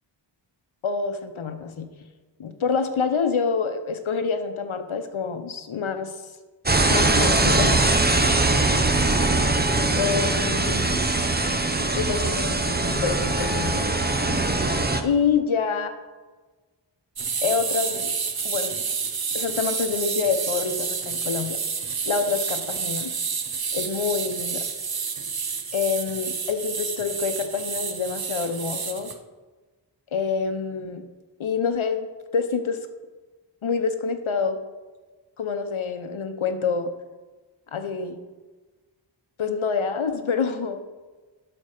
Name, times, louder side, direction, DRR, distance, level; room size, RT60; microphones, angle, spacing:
voice 1, 0.8-1.9 2.4-6.2 6.9-7.7 10.0-11.0 12.0-13.8 15.0-15.9 17.4-18.1 18.4-18.8 19.3-21.6 22.1-23.1 23.7-24.7 25.7-29.1 30.1-31.1 31.4-32.1 32.3-32.8 33.6-34.6 35.4-36.9 37.7-38.2 39.4-40.8, left 5 dB, 90° left, 8 dB, 0.9 m, -27 dB
sound 1, 6.7-15.0, right 2 dB, 20° right, 0.8 m, -21 dB
sound 2, 17.2-29.1, right 6 dB, 50° right, 0.9 m, -29 dB
12.0 x 4.5 x 6.5 m, 1.3 s
wide cardioid pair, 70°, 47 cm